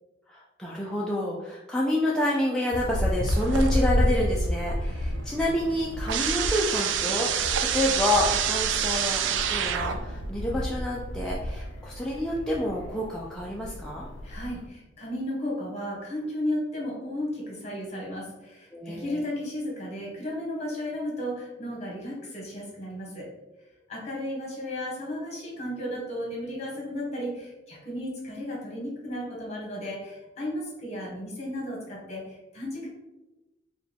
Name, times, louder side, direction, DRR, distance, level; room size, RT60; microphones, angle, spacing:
voice 1, 0.3-14.1 18.7-19.2, left 1 dB, 5° left, -5 dB, 0.3 m, -28 dB
sound 1, 2.7-14.7, left 1 dB, 85° left, 0.5 m, -31 dB
sound 2, 3.3-4.1 4.4-10.3, right 9 dB, 80° right, 0.3 m, -28 dB
voice 2, 14.2-23.3 23.9-32.9, left 1 dB, 35° left, -3 dB, 1.3 m, -34 dB
4.7 x 2.3 x 3.4 m, 1.0 s
head